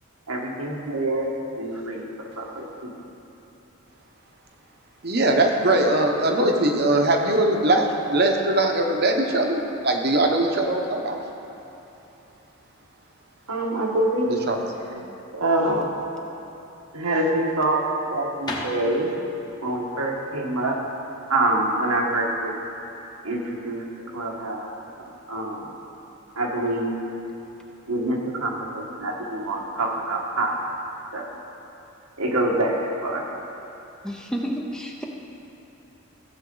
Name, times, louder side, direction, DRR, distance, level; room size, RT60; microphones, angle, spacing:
voice 1, 0.3-1.3 1.6-3.0 13.5-14.4 14.9-15.0 15.3-15.9 16.9-19.1 19.6-20.8 21.3-22.6 23.2-23.8 24.1-24.7 25.3-25.6 26.3-26.9 27.9-30.6 31.1-31.3 32.2-33.2, right 1 dB, 85° right, -1 dB, 1.5 m, -25 dB
voice 2, 5.0-11.2 14.5-14.6, right 2 dB, 45° right, 3 dB, 1.0 m, -21 dB
sound 1, 18.4-22.2, left 1 dB, 20° left, 1.0 m, -38 dB
voice 3, 34.0-35.0, equal, 5° left, 0 dB, 0.6 m, -30 dB
15.5 x 7.4 x 3.9 m, 3.0 s
head